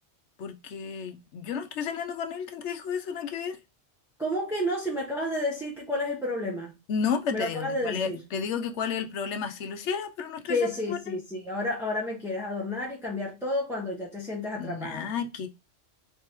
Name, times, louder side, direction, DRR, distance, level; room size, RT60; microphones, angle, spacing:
voice 1, 0.4-3.6 6.9-11.2 14.6-15.5, left 6 dB, 75° left, 0.9 m, -32 dB
voice 2, 4.2-6.7 7.3-8.2 10.5-15.1, left 1 dB, 5° right, 0.8 m, -31 dB
3.9 x 3.4 x 2.9 m
omnidirectional pair, 1.2 m